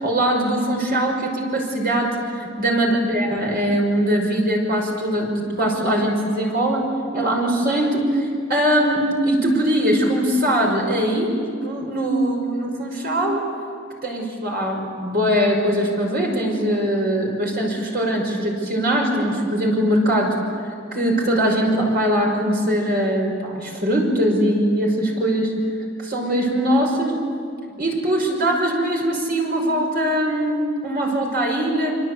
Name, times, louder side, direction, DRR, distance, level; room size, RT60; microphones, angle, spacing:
voice 1, 0.0-13.4 14.0-20.4 20.9-25.5 26.0-27.2 27.8-31.9, right 1 dB, 45° right, 0 dB, 5.8 m, -21 dB
27.0 x 25.5 x 8.3 m, 2.3 s
head